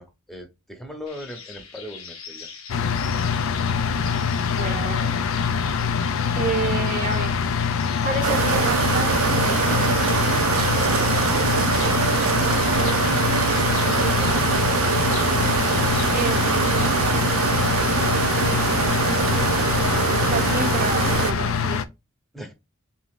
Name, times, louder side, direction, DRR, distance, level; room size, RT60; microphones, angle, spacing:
voice 1, 0.0-3.1 22.3-22.5, equal, ahead, 0.8 m, -41 dB
sound 1, 1.1-16.9, left 6 dB, 85° left, 1.0 m, -40 dB
sound 2, 2.7-21.8, left 6 dB, 70° left, 0.4 m, -24 dB
voice 2, 4.5-5.2 6.4-7.3 8.0-10.0 16.1-17.3 20.3-21.8, right 4 dB, 40° right, 0.6 m, -29 dB
sound 3, 8.2-21.3, right 6 dB, 85° right, 0.5 m, -23 dB
3.5 x 2.7 x 3.6 m
head